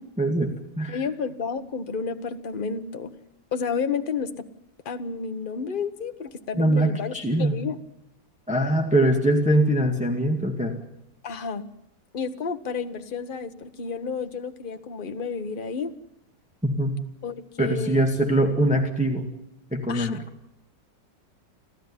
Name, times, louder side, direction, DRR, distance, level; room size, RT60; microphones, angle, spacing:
voice 1, 0.2-1.0 6.6-7.6 8.5-10.8 16.6-17.0 17.6-19.3 19.7-20.2, right 1 dB, 5° right, 2 dB, 2.0 m, -23 dB
voice 2, 0.9-3.1 3.5-4.4 4.8-7.8 11.2-11.7 12.1-15.9 17.2-18.1 19.9-20.2, left 5 dB, 35° left, 8 dB, 1.2 m, -31 dB
29.5 x 13.5 x 9.9 m, 0.83 s
omnidirectional pair, 1.9 m